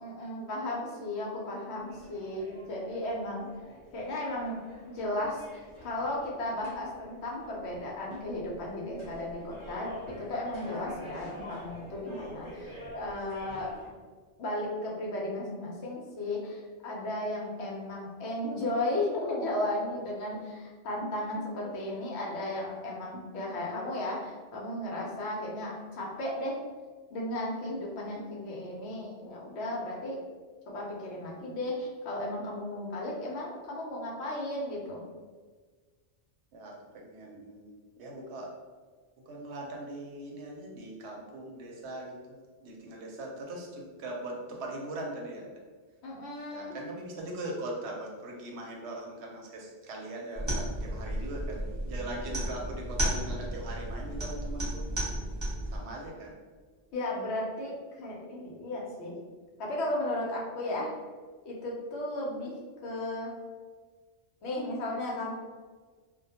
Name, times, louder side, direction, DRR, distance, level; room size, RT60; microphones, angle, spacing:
voice 1, 0.0-3.5 3.9-4.6 4.9-13.7 14.4-26.6 27.1-30.2 30.7-35.0 46.0-46.8 56.9-59.1 59.6-60.9 61.4-62.5 62.8-63.3 64.4-65.3, left 1 dB, 70° left, -3 dB, 0.8 m, -35 dB
sound 1, 1.8-13.9, equal, 30° left, 0.8 m, -48 dB
voice 2, 36.5-38.5 39.3-45.5 46.5-54.9 55.7-56.3, right 1 dB, 70° right, -1 dB, 0.8 m, -40 dB
sound 2, 50.4-55.8, right 1 dB, 20° right, 0.6 m, -33 dB
2.2 x 2.1 x 2.7 m, 1.5 s
omnidirectional pair, 1.2 m